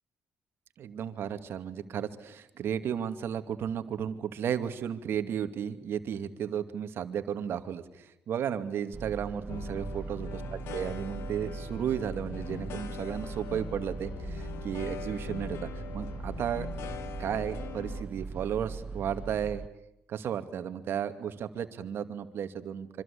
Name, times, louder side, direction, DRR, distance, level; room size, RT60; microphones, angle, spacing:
voice 1, 0.8-10.4 10.7-16.7 17.2-19.6 20.1-23.0, right 8 dB, 65° right, 10 dB, 2.4 m, -34 dB
sound 1, 8.9-19.7, right 4 dB, 30° right, 1.1 m, -40 dB
sound 2, 9.5-18.0, left 8 dB, 70° left, 2.3 m, -42 dB
26.5 x 25.5 x 8.6 m, 0.85 s
supercardioid pair, 65°, 4 cm